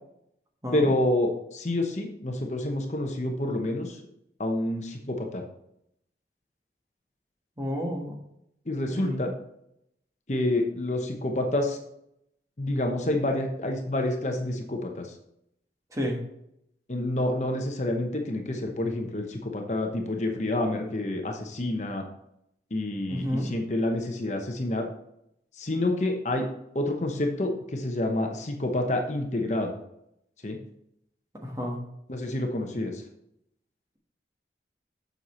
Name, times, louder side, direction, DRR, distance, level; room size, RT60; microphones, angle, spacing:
voice 1, 0.7-4.0 4.4-5.4 8.7-9.3 10.3-11.8 12.6-15.1 16.9-22.0 22.7-24.9 25.6-26.5 26.7-29.7 30.4-30.6 32.1-33.0, left 1 dB, 40° left, 3 dB, 0.9 m, -28 dB
voice 2, 7.6-8.1 8.9-9.2 15.9-16.2 23.1-23.5 31.4-31.8, equal, 20° right, 0 dB, 1.4 m, -30 dB
7.7 x 6.6 x 4.3 m, 0.78 s
head